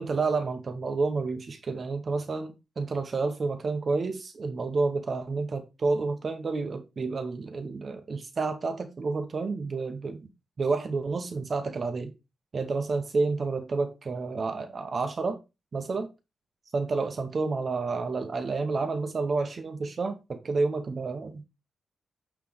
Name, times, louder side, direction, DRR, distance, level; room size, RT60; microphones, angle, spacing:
voice 1, 0.0-10.3 10.6-12.1 12.5-15.4 15.7-16.1 16.7-21.4, right 3 dB, 40° right, 0.8 m, -30 dB
8.6 x 3.2 x 3.9 m
wide cardioid pair, 130°, 0 cm